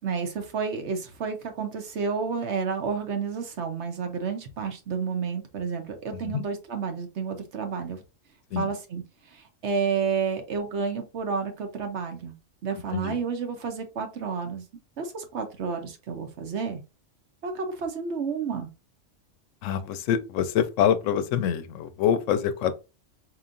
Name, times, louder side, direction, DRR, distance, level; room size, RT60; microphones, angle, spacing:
voice 1, 0.0-8.0 8.6-9.0 9.3-12.3 12.6-14.6 15.0-16.8 17.4-18.7, right 5 dB, 65° right, 1.1 m, -30 dB
voice 2, 19.6-22.8, left 8 dB, 80° left, 0.9 m, -25 dB
4.5 x 3.0 x 2.5 m
omnidirectional pair, 1.3 m